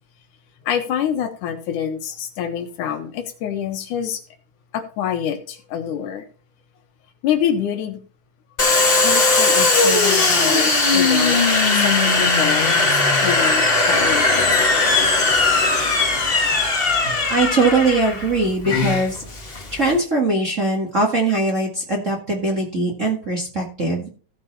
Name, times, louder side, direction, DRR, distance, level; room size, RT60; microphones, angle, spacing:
voice 1, 0.6-4.2 4.7-6.3 7.2-8.0 9.0-11.4 11.7-14.5, left 9 dB, 75° left, 2.6 m, -26 dB
Domestic sounds home sounds, 8.6-20.0, left 3 dB, 40° left, 0.8 m, -18 dB
voice 2, 16.6-19.2 19.7-24.1, right 2 dB, 30° right, 1.7 m, -21 dB
16.0 x 5.4 x 4.1 m
omnidirectional pair, 3.7 m